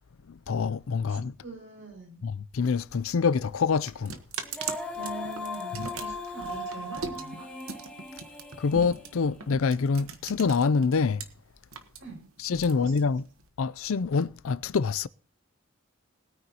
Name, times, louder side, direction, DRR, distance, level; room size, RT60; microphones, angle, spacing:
voice 1, 0.3-1.3 2.2-4.2 8.6-11.2 12.4-13.2 13.6-15.1, left 5 dB, 80° left, 0.5 m, -26 dB
voice 2, 1.1-2.2 5.0-7.5 12.0-12.2 12.6-12.9, right 4 dB, 65° right, 6.0 m, -43 dB
sound 1, 3.1-11.2 11.6-13.5, right 5 dB, 85° right, 1.2 m, -40 dB
Female singing, 4.4-9.6, left 2 dB, 5° left, 1.8 m, -38 dB
20.5 x 9.3 x 2.9 m
head